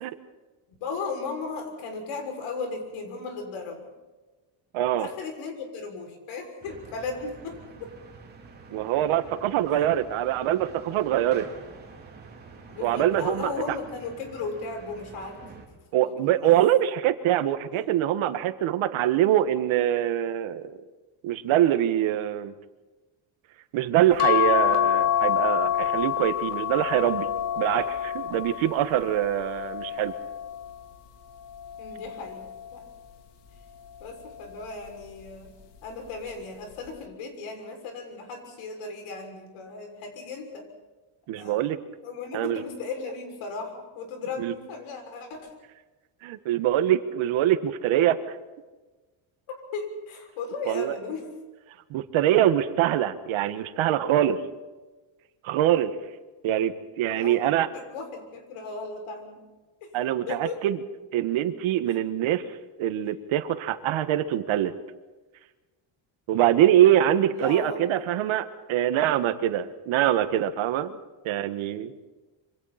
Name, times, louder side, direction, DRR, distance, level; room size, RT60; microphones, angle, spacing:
voice 1, 0.8-3.9 5.0-7.9 12.7-15.6 16.0-16.5 17.7-18.0 31.8-32.9 34.0-35.6 35.8-40.7 41.4-41.6 42.0-45.6 49.5-51.3 57.0-59.4 59.8-59.9 60.3-60.6 67.3-68.1, left 4 dB, 90° left, 4 dB, 6.5 m, -36 dB
voice 2, 4.7-5.1 8.7-11.5 12.8-13.5 15.9-20.7 21.2-22.5 23.7-27.3 27.6-30.1 41.3-41.8 42.3-42.6 44.4-44.5 46.2-48.4 50.7-50.9 51.9-54.4 55.4-55.9 56.4-57.7 59.9-60.8 61.1-62.4 62.8-64.7 66.3-71.0 71.2-71.9, right 12 dB, 70° right, 9 dB, 1.8 m, -24 dB
sound 1, 6.6-15.7, right 4 dB, 20° right, 3.7 m, -47 dB
sound 2, 24.2-30.8 31.5-32.9 34.1-34.5 34.9-35.0, left 11 dB, 55° left, 2.2 m, -27 dB
27.0 x 25.5 x 4.4 m, 1.2 s
cardioid pair, 180°, 49 cm